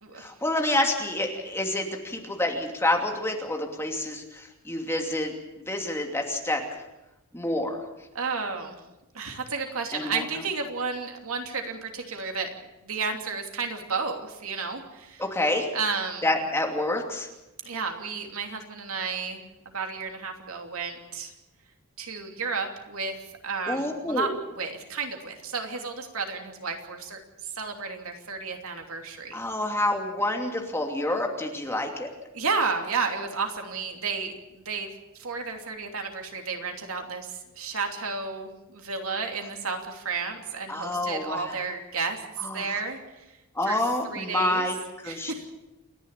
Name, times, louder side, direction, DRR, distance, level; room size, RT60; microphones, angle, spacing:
voice 1, 0.2-5.3 5.7-6.6 7.3-7.8 9.9-10.5 15.2-15.7 16.2-17.3 23.7-24.3 29.3-32.1 40.7-41.6 42.4-42.7 43.5-45.3, left 1 dB, 10° left, 2 dB, 2.7 m, -28 dB
voice 2, 8.1-8.8 9.1-12.5 12.9-15.2 15.7-16.2 17.6-19.4 19.7-21.3 22.0-23.1 23.4-24.3 24.6-27.2 27.6-29.4 32.3-34.3 34.6-34.9 35.2-37.3 37.6-42.2 42.5-43.0 43.7-43.8 44.1-44.7 45.0-45.5, right 4 dB, 80° right, 4 dB, 2.9 m, -32 dB
28.5 x 11.0 x 9.1 m, 0.98 s
head